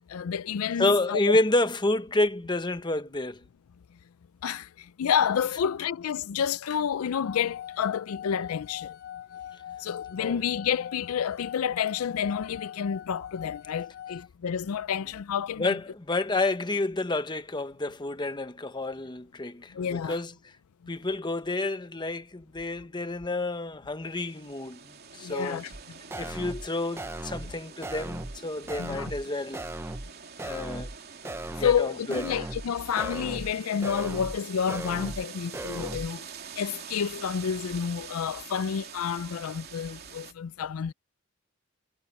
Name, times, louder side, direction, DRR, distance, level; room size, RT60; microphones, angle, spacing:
voice 1, 0.1-1.2 4.4-8.9 9.8-15.8 19.7-20.2 25.2-25.7 28.8-29.1 30.4-30.7 31.6-36.2 36.6-40.9, left 7 dB, 85° left, 0.4 m, -29 dB
voice 2, 0.8-3.4 10.2-10.4 15.6-20.3 20.9-25.6 26.2-29.7 30.5-30.9 31.6-32.2, left 2 dB, 20° left, 0.9 m, -29 dB
sound 1, 7.2-14.3, left 10 dB, 45° left, 0.9 m, -42 dB
sound 2, 24.1-40.3, right 7 dB, 50° right, 3.0 m, -46 dB
sound 3, 25.7-25.8 26.1-26.7 27.0-27.5 27.8-28.4 28.7-29.2 29.5-30.1 30.4-31.0 31.2-31.8 32.1-32.7 33.0-33.5 33.8-34.4 34.7-35.2 35.5-36.1, right 1 dB, 10° right, 0.6 m, -37 dB
head